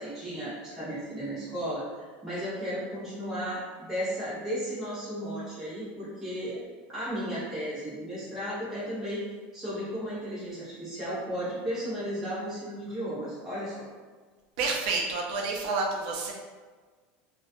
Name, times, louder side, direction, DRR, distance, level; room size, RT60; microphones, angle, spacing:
voice 1, 0.0-3.6 3.9-6.6 6.9-9.2 9.5-13.8, equal, 5° right, -11 dB, 0.7 m, -34 dB
voice 2, 14.6-16.3, right 3 dB, 60° right, 0 dB, 0.5 m, -29 dB
2.3 x 2.1 x 2.5 m, 1.4 s
supercardioid pair, 175°, 5 cm